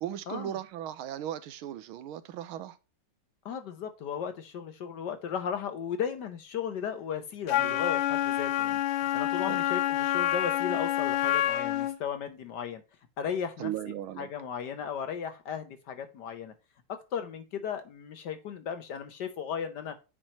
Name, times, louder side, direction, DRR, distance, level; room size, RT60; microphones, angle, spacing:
voice 1, 0.0-2.8 7.6-7.8 9.5-9.7 13.6-14.3, right 11 dB, 80° right, 1.5 m, -37 dB
voice 2, 3.4-8.8 9.1-12.8 13.2-13.7 14.2-16.5 17.1-20.0, left 7 dB, 65° left, 1.2 m, -35 dB
Wind instrument woodwind instrument, 7.5-12.0, left 13 dB, 85° left, 1.7 m, -28 dB
8.9 x 4.5 x 2.8 m
omnidirectional pair, 2.4 m